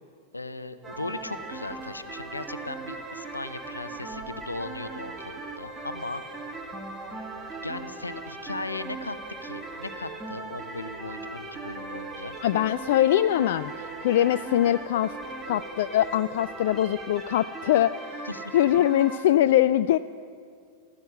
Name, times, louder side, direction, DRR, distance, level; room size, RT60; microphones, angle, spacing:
voice 1, 0.3-6.2 7.4-12.4 18.2-18.6, left 2 dB, 80° left, 12 dB, 0.7 m, -38 dB
sound 1, 0.8-19.2, right 3 dB, 15° right, 1.7 m, -39 dB
sound 2, 0.8-17.3, right 2 dB, 40° right, 4.9 m, -49 dB
voice 2, 12.4-15.2 15.5-18.2 18.5-20.0, left 12 dB, 55° left, 13 dB, 0.3 m, -23 dB
15.0 x 14.5 x 6.5 m, 2.2 s
figure-of-eight pair, 90°, 0 cm